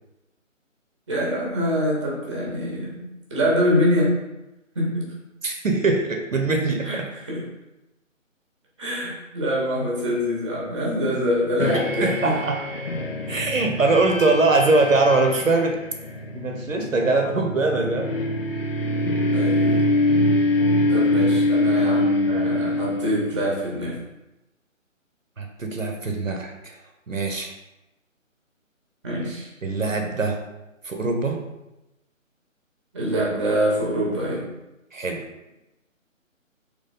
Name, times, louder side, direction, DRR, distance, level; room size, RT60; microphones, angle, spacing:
voice 1, 1.1-4.2 4.7-5.1 6.8-7.4 8.8-12.3 19.3-19.8 20.9-24.0 29.0-29.5 32.9-34.5, equal, 20° right, -4 dB, 1.0 m, -25 dB
voice 2, 5.4-7.0 11.7-12.6 13.3-15.8 16.3-18.1 25.4-26.8 27.1-27.5 29.6-30.4 30.8-31.4 34.9-35.2, right 3 dB, 75° right, 3 dB, 0.9 m, -22 dB
sound 1, 11.6-23.7, left 2 dB, 50° left, 0.6 m, -24 dB
3.8 x 3.1 x 4.1 m, 0.98 s
figure-of-eight pair, 150°, 39 cm